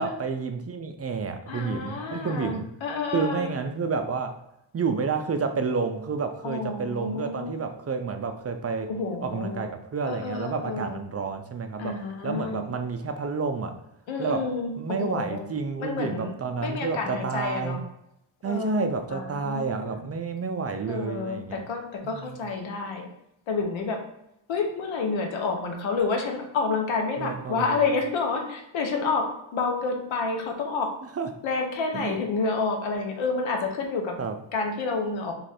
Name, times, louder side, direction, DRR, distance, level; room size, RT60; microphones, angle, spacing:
voice 1, 0.0-2.7 3.1-4.4 4.7-8.9 9.2-13.8 14.2-14.5 14.8-17.8 18.4-21.6 22.0-22.4 27.2-27.9 31.1-31.3 31.9-32.2 34.2-34.4, right 5 dB, 35° right, 6 dB, 0.4 m, -30 dB
voice 2, 1.5-3.5 6.4-7.6 8.9-9.6 10.1-11.0 11.8-12.7 14.1-15.4 15.8-16.3 16.6-17.8 18.4-20.0 20.9-23.1 23.5-24.0 24.5-29.3 29.5-30.9 31.4-34.1 34.5-35.3, left 4 dB, 75° left, 3 dB, 0.9 m, -29 dB
3.0 x 2.5 x 4.2 m, 0.82 s
cardioid pair, 60°, 47 cm